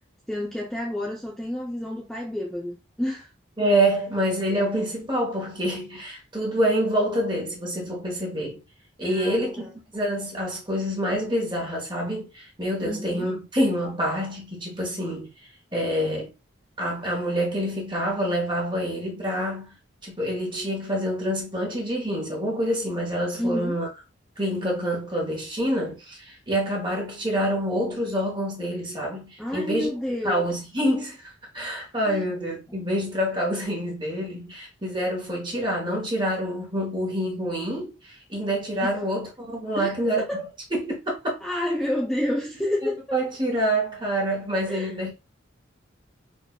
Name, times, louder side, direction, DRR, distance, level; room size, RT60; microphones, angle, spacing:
voice 1, 0.3-3.3 9.0-9.7 12.8-13.3 23.3-23.8 29.4-30.5 32.1-32.3 38.8-39.0 39.8-40.5 41.4-42.9 44.7-44.9, left 1 dB, 5° left, 0.6 m, -30 dB
voice 2, 3.6-8.6 9.0-15.3 15.7-16.3 16.8-19.7 20.0-23.9 24.4-29.9 30.2-40.2 40.7-41.4 42.8-45.1, equal, 25° right, 1.2 m, -27 dB
4.4 x 2.6 x 2.3 m
head